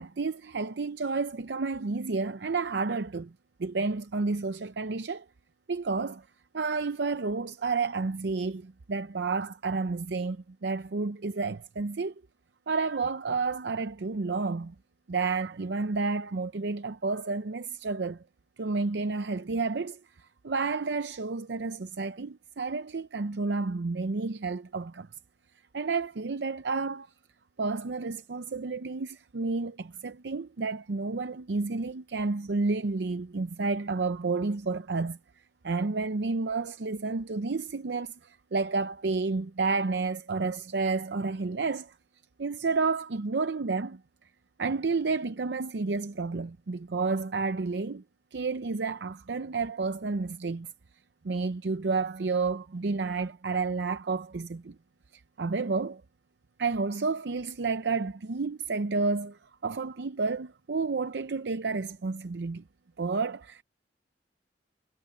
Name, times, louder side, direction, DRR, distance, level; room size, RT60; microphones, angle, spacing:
voice 1, 0.0-3.3 3.6-5.2 5.7-6.2 6.5-12.1 12.7-14.7 15.1-18.2 18.6-25.1 25.7-27.1 27.6-35.2 35.6-41.9 42.4-44.0 44.6-48.0 48.3-50.7 51.2-54.8 55.1-56.0 56.6-62.6 63.0-63.6, right 4 dB, 75° right, 0.6 m, -30 dB
head